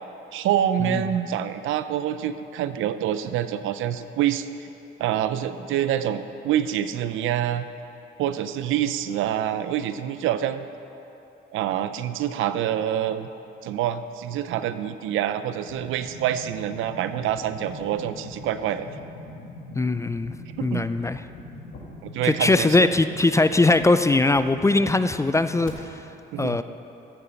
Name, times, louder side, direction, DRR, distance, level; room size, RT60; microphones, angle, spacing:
voice 1, 0.3-4.5 5.0-7.6 8.2-10.7 11.5-13.3 13.6-18.9 20.6-20.9 22.0-22.9 26.3-26.6, right 10 dB, 85° right, 11 dB, 0.6 m, -26 dB
sound 1, 15.7-25.7, left 1 dB, 80° left, 1.8 m, -42 dB
voice 2, 19.8-20.3 20.6-21.2 22.2-25.9 26.4-26.6, left 2 dB, 15° left, 11 dB, 0.3 m, -20 dB
14.0 x 6.9 x 5.7 m, 2.9 s
cardioid pair, 90°, 20 cm